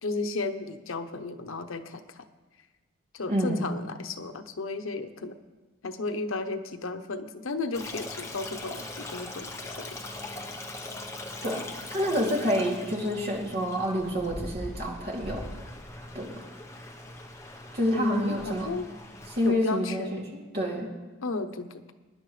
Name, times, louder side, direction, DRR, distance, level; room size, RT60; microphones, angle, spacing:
voice 1, 0.0-2.2 3.1-5.4 5.8-10.0 10.3-10.4 17.9-18.9 19.4-20.2 21.2-21.9, left 3 dB, 90° left, 7 dB, 0.9 m, -34 dB
voice 2, 3.3-3.7 11.4-15.4 16.1-16.3 17.7-18.7 19.3-20.2 20.5-20.9, equal, 50° right, -3 dB, 2.8 m, -28 dB
Stream, 7.7-19.5, left 2 dB, 15° left, 0.9 m, -41 dB
22.5 x 10.5 x 3.3 m, 1.2 s
head